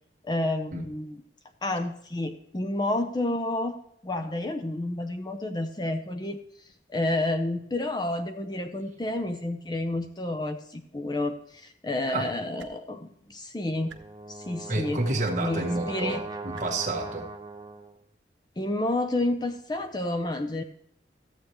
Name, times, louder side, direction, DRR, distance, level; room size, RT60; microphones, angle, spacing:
voice 1, 0.2-1.2 1.6-3.8 4.0-6.4 6.9-13.9 14.3-15.1 15.4-16.2 18.6-20.6, left 1 dB, 20° left, 6 dB, 0.6 m, -30 dB
sound 1, 12.6-12.7 13.9-14.0 15.2-15.4 16.5-16.7 17.9-18.0, right 6 dB, 85° right, 0.9 m, -48 dB
Brass instrument, 13.8-18.0, right 3 dB, 20° right, 0.6 m, -40 dB
voice 2, 14.7-17.3, right 2 dB, 40° right, 0 dB, 1.6 m, -29 dB
14.0 x 8.2 x 3.0 m, 0.69 s
head